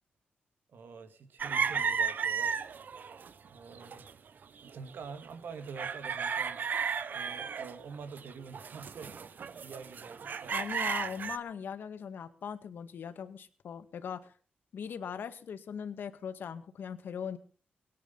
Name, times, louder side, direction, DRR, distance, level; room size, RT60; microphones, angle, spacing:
voice 1, 0.7-2.6 3.3-4.1 4.6-6.6 7.1-10.6, right 5 dB, 75° right, 9 dB, 2.4 m, -46 dB
sound 1, 1.4-3.3 3.7-4.1 4.6-5.4 5.7-11.4, right 6 dB, 60° right, 1.1 m, -34 dB
voice 2, 10.5-14.3 14.7-17.4, left 7 dB, 75° left, 10 dB, 1.9 m, -40 dB
22.5 x 10.0 x 5.6 m, 0.41 s
cardioid pair, 100°, 4 cm